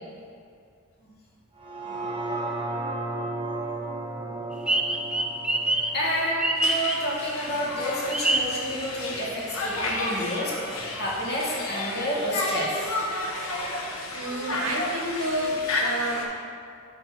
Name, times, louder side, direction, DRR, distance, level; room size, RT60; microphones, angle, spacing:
sound 1, 1.6-7.7 8.1-8.2, right 2 dB, 25° right, 1.0 m, -34 dB
sound 2, 4.7-7.5 8.1-9.2 9.5-9.6 10.0-11.1, right 1 dB, 5° right, 0.3 m, -26 dB
voice 1, 5.9-10.5 10.9-13.0, equal, 50° left, -5 dB, 1.7 m, -29 dB
Conversation, 6.6-16.2, left 2 dB, 70° left, 1.0 m, -32 dB
voice 2, 14.1-16.3, equal, 85° right, 0 dB, 1.2 m, -30 dB
10.0 x 4.0 x 4.3 m, 2.3 s
head